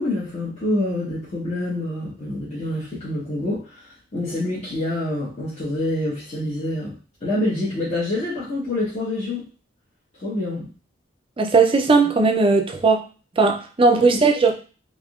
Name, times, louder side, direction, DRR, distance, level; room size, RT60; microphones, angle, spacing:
voice 1, 0.0-6.9 7.2-9.4 10.2-10.7, left 1 dB, 35° left, -9 dB, 1.0 m, -26 dB
voice 2, 11.4-13.0 13.4-14.5, right 4 dB, 30° right, 4 dB, 0.4 m, -17 dB
3.5 x 2.6 x 2.4 m, 0.36 s
head